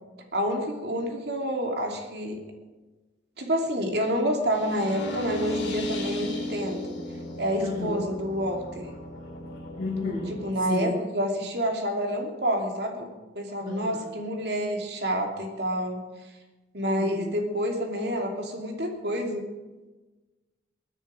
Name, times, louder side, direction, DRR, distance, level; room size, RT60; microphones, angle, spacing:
voice 1, 0.3-2.4 3.4-7.0 7.4-8.9 10.3-16.0 16.7-19.5, equal, 60° right, 2 dB, 2.8 m, -28 dB
sound 1, 4.5-10.5, left 1 dB, 70° left, 5.3 m, -36 dB
voice 2, 7.6-7.9 9.8-10.3 10.7-10.9 13.6-14.0 17.0-17.3, left 2 dB, 45° left, -9 dB, 6.0 m, -31 dB
22.0 x 9.7 x 5.1 m, 1.2 s
head